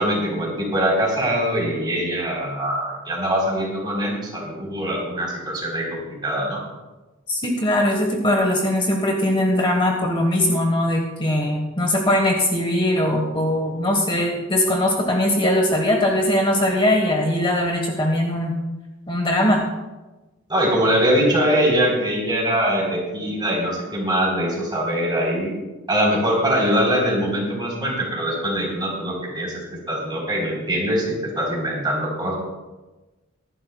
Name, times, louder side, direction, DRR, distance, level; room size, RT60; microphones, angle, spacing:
voice 1, 0.0-6.6 20.5-25.5 25.9-29.6 29.9-32.4, equal, 20° right, -3 dB, 3.9 m, -22 dB
voice 2, 7.3-18.5 19.1-19.6, left 1 dB, 25° left, 1 dB, 1.3 m, -20 dB
23.5 x 11.5 x 2.3 m, 1.1 s
head